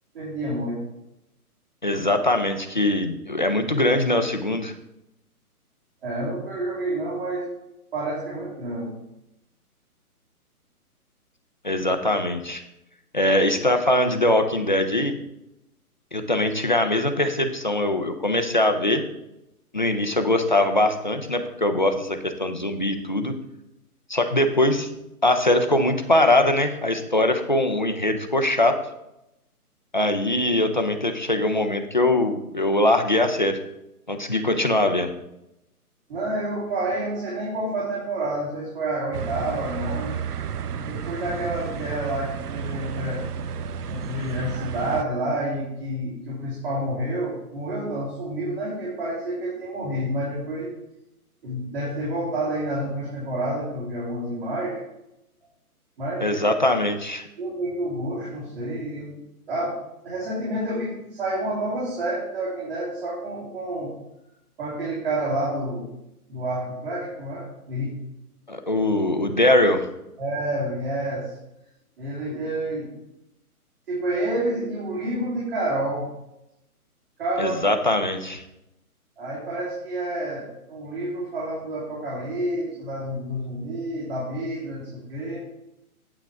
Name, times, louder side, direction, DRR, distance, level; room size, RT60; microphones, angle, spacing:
voice 1, 0.1-0.8 6.0-7.5 7.9-8.9 36.1-40.1 40.7-43.2 43.9-50.7 51.4-54.8 56.0-56.4 57.4-59.2 59.5-59.8 60.0-63.9 64.6-65.9 66.3-67.9 70.2-71.3 72.0-72.9 73.9-76.1 77.2-77.6 79.2-85.4, right 1 dB, 40° right, -7 dB, 3.0 m, -29 dB
voice 2, 1.8-4.7 11.6-12.6 13.1-15.2 16.1-19.0 19.7-23.3 24.1-24.9 25.2-28.8 29.9-33.6 34.1-35.1 56.2-57.3 68.5-69.9 77.4-78.4, left 1 dB, 35° left, 6 dB, 0.4 m, -22 dB
sound 1, 39.1-45.0, right 7 dB, 85° right, 0.7 m, -32 dB
9.1 x 8.0 x 3.5 m, 0.88 s
hypercardioid pair, 170°, 45 cm